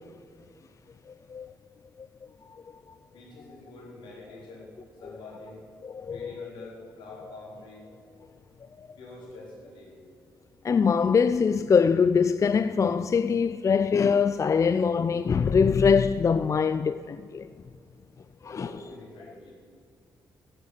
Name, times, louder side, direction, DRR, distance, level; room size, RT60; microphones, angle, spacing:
voice 1, 3.1-4.7 5.0-5.6 6.0-7.9 9.0-10.0 18.6-19.5, left 2 dB, 80° left, 4.0 m, -45 dB
voice 2, 5.8-6.5 8.8-8.9 10.6-17.5 18.4-18.7, left 6 dB, 40° left, 0.4 m, -23 dB
14.5 x 7.8 x 7.4 m
supercardioid pair, 55°, 8 cm